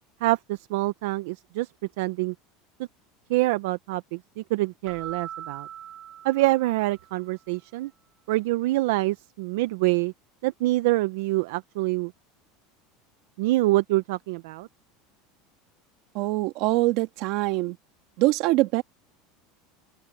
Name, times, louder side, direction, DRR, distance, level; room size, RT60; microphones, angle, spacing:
voice 1, 0.2-1.7 2.0-2.3 3.3-5.7 6.2-7.9 8.3-10.1 10.4-12.1 13.4-14.7, right 19 dB, 75° right, 0.6 m, -25 dB
Keyboard (musical), 4.9-7.3, right 10 dB, 30° right, 3.8 m, -41 dB
voice 2, 16.1-17.8 18.2-18.8, right 20 dB, 55° right, 2.1 m, -23 dB
open air
supercardioid pair, 160°, 0 cm